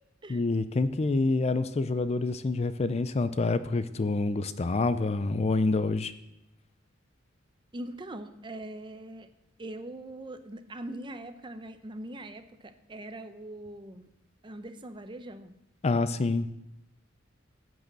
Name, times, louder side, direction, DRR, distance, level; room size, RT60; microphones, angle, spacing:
voice 1, 0.3-6.1 15.8-16.5, left 3 dB, 35° left, 13 dB, 0.4 m, -27 dB
voice 2, 7.7-9.3 9.6-14.1 14.4-15.5, right 1 dB, 25° right, 9 dB, 0.7 m, -42 dB
10.5 x 6.4 x 7.5 m, 0.88 s
head